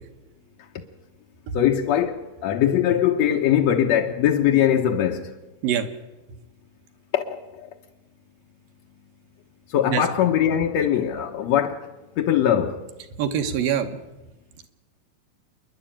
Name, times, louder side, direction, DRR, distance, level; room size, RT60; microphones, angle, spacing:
voice 1, 1.5-5.3 7.1-7.7 9.7-11.9 12.2-12.8, left 10 dB, 70° left, 1.6 m, -21 dB
voice 2, 13.2-13.9, right 9 dB, 70° right, 2.7 m, -24 dB
28.0 x 11.0 x 8.8 m
omnidirectional pair, 4.4 m